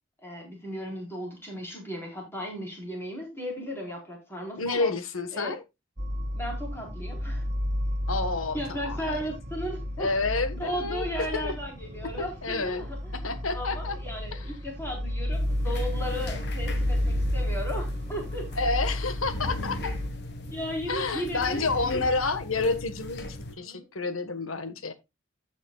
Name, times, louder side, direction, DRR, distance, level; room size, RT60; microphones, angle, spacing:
voice 1, 0.2-4.9 5.3-5.5 6.3-7.4 8.5-10.1 10.5-13.2 13.5-18.5 20.5-22.0 23.6-23.9, equal, 10° left, 4.3 m, -36 dB
voice 2, 4.6-5.6 8.1-9.3 10.0-11.6 12.0-12.9 13.1-14.0 14.3-14.4 18.6-19.9 20.9-24.9, left 3 dB, 85° left, 1.4 m, -29 dB
sound 1, 6.0-20.1, left 1 dB, 40° right, 2.0 m, -32 dB
sound 2, 15.3-23.5, left 2 dB, 55° left, 1.5 m, -37 dB
15.5 x 6.2 x 2.3 m
head